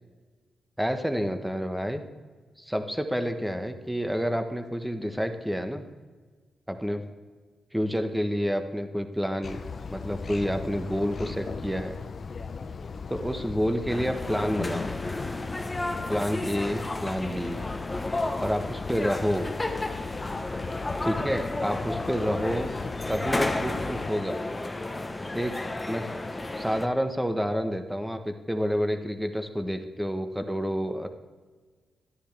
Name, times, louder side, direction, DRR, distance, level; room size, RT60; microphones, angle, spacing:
voice 1, 0.8-2.0 2.7-5.8 6.7-7.0 7.7-9.6 9.9-12.0 13.1-14.9 16.1-17.6 18.4-19.5 21.0-22.7 23.1-24.4 25.3-26.1 26.5-31.1, equal, 5° right, 7 dB, 1.1 m, -29 dB
sound 1, 9.4-24.1, left 5 dB, 55° left, 0.6 m, -38 dB
sound 2, 13.9-26.9, left 2 dB, 25° left, 1.0 m, -32 dB
13.0 x 10.0 x 3.4 m, 1.4 s
cardioid pair, 60°, 0 cm